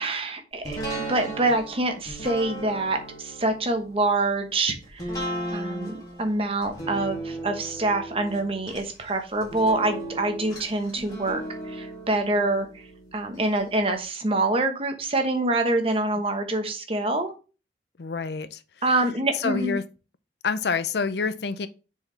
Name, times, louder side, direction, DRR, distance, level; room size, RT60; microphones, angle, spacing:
voice 1, 0.0-5.1 5.5-17.3 18.8-19.8, right 2 dB, 30° right, 1.1 m, -26 dB
sound 1, 0.6-13.6 14.0-14.1, right 1 dB, 20° left, 2.6 m, -36 dB
voice 2, 18.0-18.6 19.3-19.8 20.4-21.7, left 5 dB, 70° left, 0.6 m, -27 dB
6.8 x 4.8 x 3.3 m
head